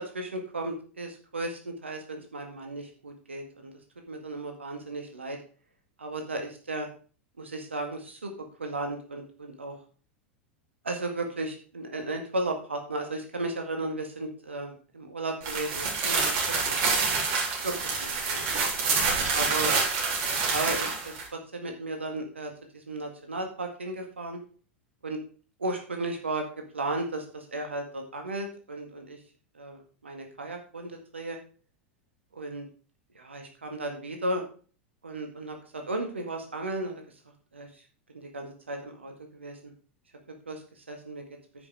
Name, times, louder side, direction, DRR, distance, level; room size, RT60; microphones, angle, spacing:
voice 1, 0.0-3.7 4.1-5.4 6.0-6.9 7.4-8.3 8.6-9.7 10.8-16.8 17.6-18.4 19.3-19.7 20.4-21.1 21.5-24.4 25.0-25.2 25.6-26.4 26.7-29.2 29.5-31.4 32.3-32.7 33.2-34.4 35.0-37.0 37.5-37.7 38.1-39.7 40.5-41.2, right 2 dB, 80° right, 3 dB, 1.9 m, -35 dB
sound 1, 15.4-21.2, right 4 dB, 50° right, 4.0 m, -27 dB
9.7 x 6.0 x 4.8 m, 0.40 s
figure-of-eight pair, 90°, 6 cm